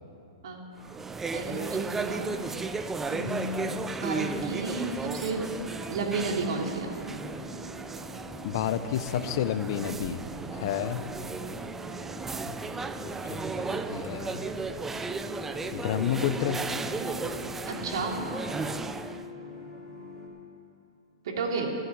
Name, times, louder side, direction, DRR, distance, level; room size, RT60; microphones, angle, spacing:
voice 1, 0.4-0.8 1.3-2.4 3.1-5.5 5.9-6.9 17.7-18.2 21.2-21.7, right 3 dB, 70° right, 1 dB, 2.9 m, -32 dB
sound 1, 0.8-19.2, right 4 dB, 10° right, 0.5 m, -35 dB
sound 2, 4.8-20.3, left 2 dB, 5° left, 4.3 m, -44 dB
voice 2, 8.4-10.2 10.5-11.0 12.5-12.6 13.1-14.4 15.7-16.6, left 10 dB, 55° left, 11 dB, 0.8 m, -30 dB
14.5 x 8.0 x 9.8 m, 2.9 s
hypercardioid pair, 130°, 3 cm